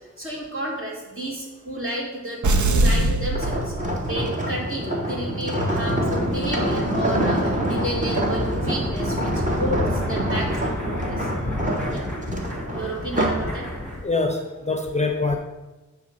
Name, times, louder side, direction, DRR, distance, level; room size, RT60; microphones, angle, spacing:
voice 1, 0.0-9.3 9.6-11.3 11.9-12.1 12.7-13.7, equal, 45° right, -3 dB, 2.4 m, -31 dB
sound 1, 2.4-4.3, right 2 dB, 70° right, 0.7 m, -21 dB
sound 2, 3.3-13.5 14.0-14.2, right 1 dB, 25° right, 1.4 m, -26 dB
sound 3, 5.7-14.0, left 1 dB, 5° left, 1.5 m, -31 dB
voice 2, 14.0-15.4, left 3 dB, 20° left, 4 dB, 0.6 m, -24 dB
8.6 x 3.3 x 6.5 m, 1.1 s
wide cardioid pair, 95°, 30 cm